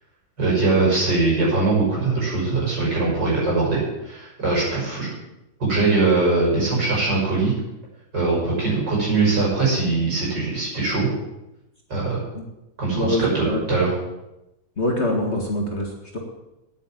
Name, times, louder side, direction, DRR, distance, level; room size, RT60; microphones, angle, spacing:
voice 1, 0.4-5.1 5.6-7.5 8.1-11.1 11.9-12.2 12.8-13.9, right 3 dB, 60° right, -5 dB, 6.9 m, -21 dB
voice 2, 12.9-13.6 14.8-16.2, left 1 dB, 35° left, 0 dB, 2.0 m, -24 dB
9.5 x 9.3 x 9.0 m, 0.93 s
omnidirectional pair, 2.2 m